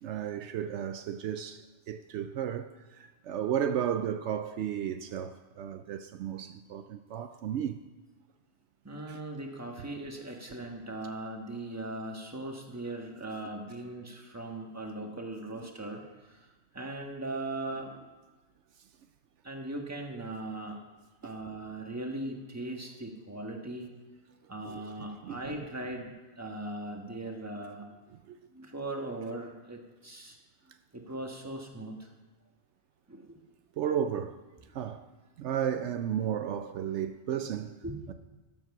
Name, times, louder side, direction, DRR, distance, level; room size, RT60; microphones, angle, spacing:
voice 1, 0.0-7.8 9.1-9.2 21.2-21.3 24.6-24.9 25.2-25.6 28.3-28.4 33.8-34.4 34.7-35.0 35.4-37.7 38.1-38.2, right 9 dB, 75° right, 0.9 m, -34 dB
voice 2, 8.8-16.5 16.7-18.1 19.4-20.8 21.2-23.9 24.5-27.9 28.5-30.4 30.9-32.2 33.1-33.4 37.8-38.0, right 2 dB, 15° right, 1.4 m, -39 dB
14.0 x 7.4 x 6.0 m
omnidirectional pair, 1.2 m